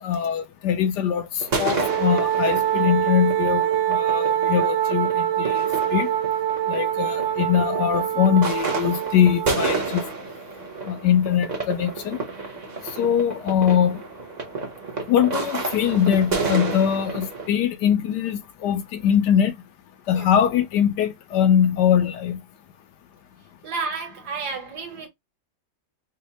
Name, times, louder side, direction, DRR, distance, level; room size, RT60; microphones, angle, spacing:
voice 1, 0.0-6.1 6.7-10.1 10.9-12.2 12.8-14.0 15.1-19.5 20.1-22.4, left 9 dB, 75° left, 1.1 m, -22 dB
sound 1, 1.4-17.5, right 4 dB, 35° right, 0.7 m, -31 dB
Wind instrument woodwind instrument, 1.8-9.8, right 11 dB, 85° right, 1.3 m, -24 dB
voice 2, 23.6-25.1, right 4 dB, 65° right, 1.6 m, -31 dB
5.2 x 2.1 x 2.8 m
omnidirectional pair, 2.0 m